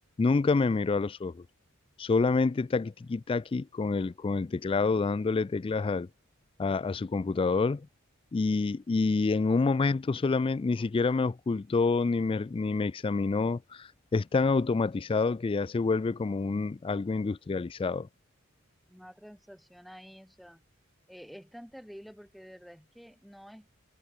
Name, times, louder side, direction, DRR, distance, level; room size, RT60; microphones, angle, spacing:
voice 1, 0.2-1.4 2.0-6.1 6.6-7.9 8.3-18.1, left 4 dB, 25° left, 0.3 m, -27 dB
voice 2, 18.9-20.6 21.1-23.7, equal, ahead, 5.7 m, -49 dB
head